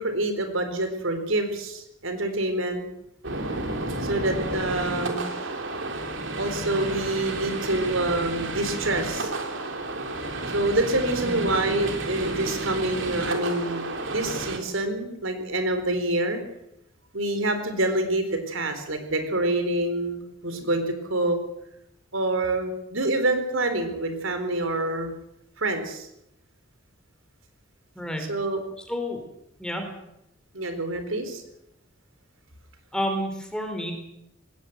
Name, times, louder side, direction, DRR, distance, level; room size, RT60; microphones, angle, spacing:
voice 1, 0.0-2.9 4.0-5.3 6.4-9.3 10.5-13.8 14.1-16.4 17.1-21.4 22.1-25.1 25.6-26.1 28.3-28.6 30.5-31.4, right 2 dB, 85° right, 8 dB, 4.1 m, -26 dB
sound 1, 3.2-14.6, right 2 dB, 65° right, 3.3 m, -31 dB
voice 2, 28.9-29.2 29.6-29.8 32.9-33.9, equal, 5° left, 4 dB, 4.3 m, -30 dB
20.0 x 18.0 x 8.0 m, 0.81 s
head